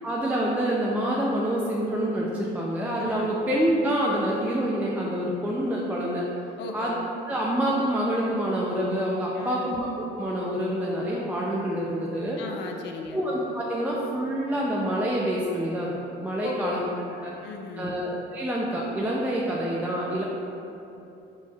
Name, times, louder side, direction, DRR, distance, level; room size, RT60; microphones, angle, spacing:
voice 1, 0.0-6.3 6.7-7.0 7.3-9.9 10.2-12.4 13.1-15.9 16.2-16.9 17.2-17.3 17.8-20.2, equal, 10° right, -4 dB, 0.3 m, -27 dB
voice 2, 3.0-3.4 6.6-7.0 9.4-9.7 12.4-13.2 16.4-16.8 17.3-18.0, left 4 dB, 65° left, 3 dB, 0.5 m, -36 dB
4.4 x 4.3 x 2.3 m, 2.9 s
cardioid pair, 125°, 19 cm